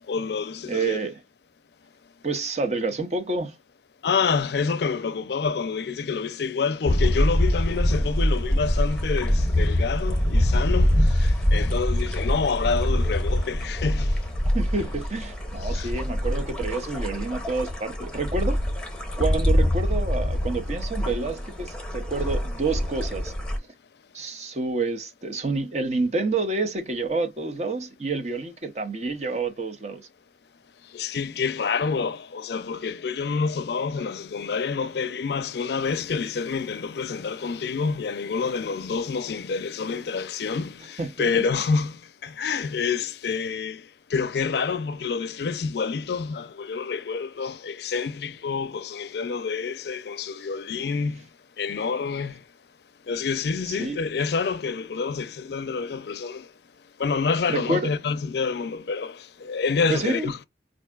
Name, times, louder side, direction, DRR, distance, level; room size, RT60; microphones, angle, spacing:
voice 1, 0.1-1.0 4.0-14.2 15.6-15.9 30.9-43.8 44.1-51.2 51.6-52.4 53.1-56.5 57.0-60.4, left 5 dB, 65° left, 0.4 m, -28 dB
voice 2, 0.7-1.2 2.2-3.6 14.5-18.6 19.2-23.3 24.1-30.1 41.0-41.4 53.7-54.0 57.5-57.9 59.9-60.3, right 3 dB, 40° right, 0.7 m, -28 dB
sound 1, 6.8-23.6, left 1 dB, 5° left, 0.9 m, -24 dB
4.7 x 2.5 x 2.3 m
head